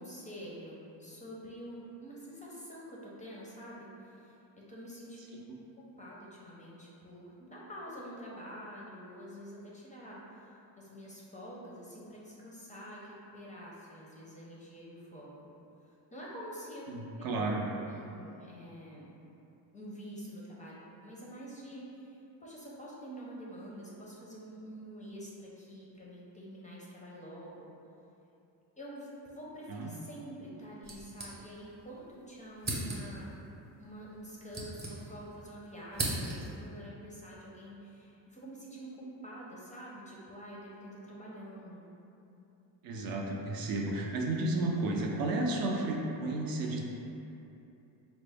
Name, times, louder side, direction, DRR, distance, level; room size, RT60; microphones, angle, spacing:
voice 1, 0.0-5.4 5.8-15.3 16.1-16.9 17.2-17.3 17.9-19.1 19.7-27.7 28.8-33.3 33.8-41.9, equal, 20° left, -5 dB, 0.5 m, -47 dB
voice 2, 16.9-17.7 29.7-29.9 42.8-46.8, right 2 dB, 55° right, 0 dB, 0.5 m, -32 dB
sound 1, 30.8-31.8 32.1-32.2 32.6-33.3 34.1-35.4 35.7-36.6, right 2 dB, 25° right, 0.8 m, -38 dB
4.1 x 2.0 x 3.4 m, 2.9 s
cardioid pair, 110°, 44 cm